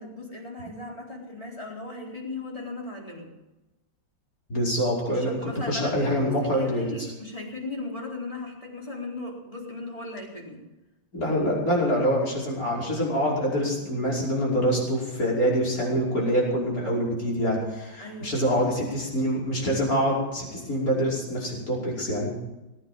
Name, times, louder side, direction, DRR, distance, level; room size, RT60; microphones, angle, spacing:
voice 1, 0.0-3.3 5.1-10.6 18.0-18.9, left 2 dB, 15° left, -2 dB, 4.1 m, -37 dB
voice 2, 4.5-5.4 5.7-6.9 11.1-22.3, equal, 45° left, -4 dB, 6.0 m, -25 dB
19.5 x 9.4 x 7.4 m, 1.0 s
omnidirectional pair, 2.1 m